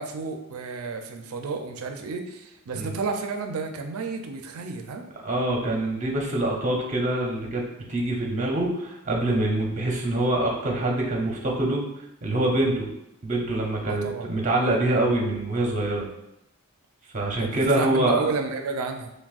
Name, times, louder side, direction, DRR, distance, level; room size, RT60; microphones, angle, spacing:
voice 1, 0.0-5.1 13.8-14.3 17.4-19.1, right 4 dB, 75° right, 5 dB, 0.4 m, -31 dB
voice 2, 5.2-11.8 12.2-12.9 13.2-16.1 17.1-18.2, right 1 dB, 35° right, -1 dB, 0.7 m, -25 dB
5.9 x 2.2 x 2.4 m, 0.85 s
head